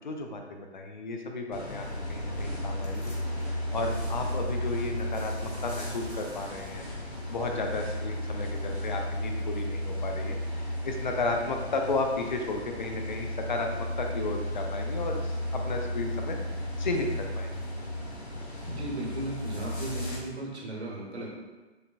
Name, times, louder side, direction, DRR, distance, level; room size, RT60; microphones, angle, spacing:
voice 1, 0.0-3.1 3.7-6.8 7.3-16.4 16.8-17.7, left 3 dB, 45° left, 3 dB, 0.5 m, -33 dB
sound 1, 1.5-20.2, left 1 dB, 75° left, 1.2 m, -34 dB
sound 2, 2.3-2.7 3.0-4.3 4.6-5.5 6.0-7.0 7.6-8.0 8.3-8.8, right 2 dB, 5° left, 0.7 m, -48 dB
voice 2, 18.7-21.3, right 2 dB, 70° right, -2 dB, 1.2 m, -36 dB
6.5 x 2.2 x 2.5 m, 1.2 s
figure-of-eight pair, 130°, 34 cm